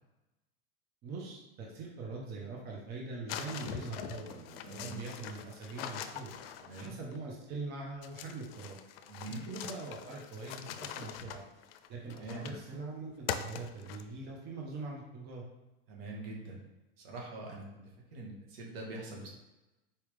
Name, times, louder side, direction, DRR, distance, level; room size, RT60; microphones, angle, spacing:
voice 1, 1.0-6.3 6.8-8.8 9.5-11.4 11.9-15.4, right 3 dB, 35° right, -1 dB, 0.9 m, -42 dB
sound 1, 3.3-7.2 8.0-12.7 13.3-14.3, left 9 dB, 80° left, 0.5 m, -43 dB
voice 2, 4.6-5.0 6.6-6.8 9.1-9.4 12.1-12.5 15.9-16.6 17.0-17.8 18.1-19.3, right 2 dB, 80° right, -2 dB, 1.6 m, -43 dB
4.5 x 3.5 x 3.3 m, 1.0 s
supercardioid pair, 140°, 29 cm